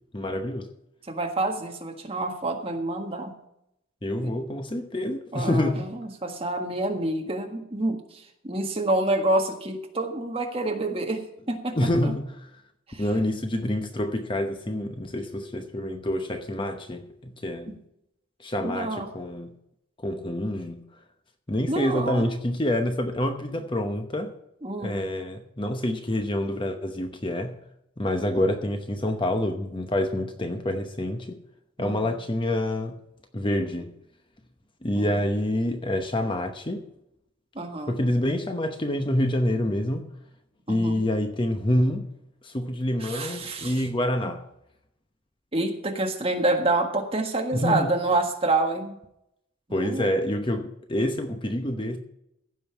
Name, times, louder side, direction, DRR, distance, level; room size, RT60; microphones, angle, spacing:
voice 1, 0.1-0.7 4.0-5.9 11.7-12.3 13.0-17.7 18.4-19.5 20.0-20.8 21.5-24.3 24.8-27.5 28.0-31.4 31.8-33.0 33.3-33.9 34.8-36.8 37.9-40.1 40.7-42.1 42.4-44.4 47.5-47.9 49.7-52.0, left 1 dB, 25° left, 0.9 m, -27 dB
voice 2, 1.1-3.4 5.3-12.1 12.9-13.0 18.6-19.1 21.7-22.2 24.6-25.1 31.8-32.1 34.9-35.2 37.5-37.9 40.7-41.1 43.0-43.8 45.5-49.0 49.7-50.1, right 2 dB, 25° right, 1.6 m, -28 dB
15.5 x 5.4 x 7.0 m
head